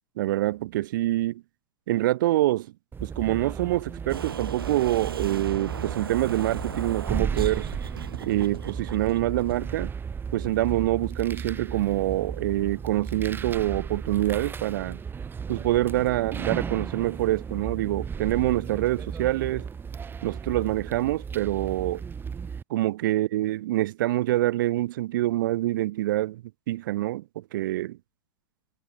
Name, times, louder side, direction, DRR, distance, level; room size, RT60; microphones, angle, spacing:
voice 1, 0.2-1.4 1.9-2.7 3.0-7.7 8.2-9.9 10.3-15.0 15.5-19.7 20.2-22.0 22.7-28.0, right 15 dB, 60° right, 0.7 m, -26 dB
sound 1, 2.9-22.6, right 6 dB, 15° right, 1.4 m, -35 dB
sound 2, 4.1-9.6, right 7 dB, 75° right, 4.8 m, -37 dB
figure-of-eight pair, 100°, 12 cm